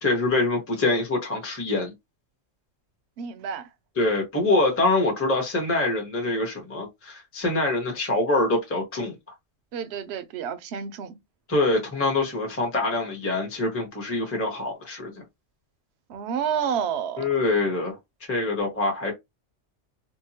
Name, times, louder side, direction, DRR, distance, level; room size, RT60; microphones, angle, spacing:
voice 1, 0.0-1.9 4.0-9.1 11.5-15.2 17.2-18.0 18.3-19.1, left 2 dB, 15° left, 0.7 m, -25 dB
voice 2, 3.2-3.7 9.7-11.2 16.1-17.3, right 7 dB, 65° right, 0.8 m, -29 dB
2.8 x 2.1 x 2.7 m
omnidirectional pair, 1.3 m